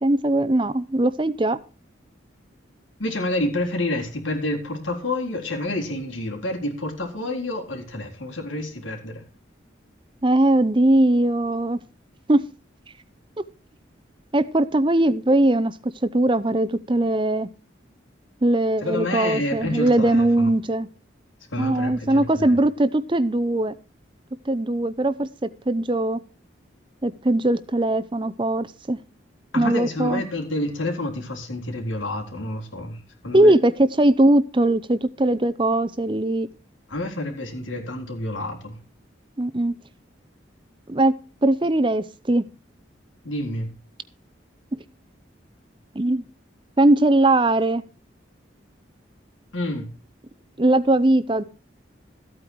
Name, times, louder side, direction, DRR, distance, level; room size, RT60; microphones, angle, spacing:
voice 1, 0.0-1.6 10.2-11.8 12.3-12.4 13.4-13.5 14.3-15.7 16.0-17.5 18.4-20.9 21.6-23.7 24.5-26.2 27.0-29.0 29.6-30.2 33.3-36.5 39.4-39.7 40.9-41.2 41.4-42.5 46.0-46.2 46.8-47.8 50.6-51.4, right 1 dB, 25° right, 0.6 m, -20 dB
voice 2, 3.0-9.2 18.8-20.5 21.5-22.6 29.5-33.5 36.9-38.8 43.2-43.7 49.5-49.9, left 1 dB, 85° left, 3.8 m, -29 dB
14.5 x 8.7 x 4.5 m
head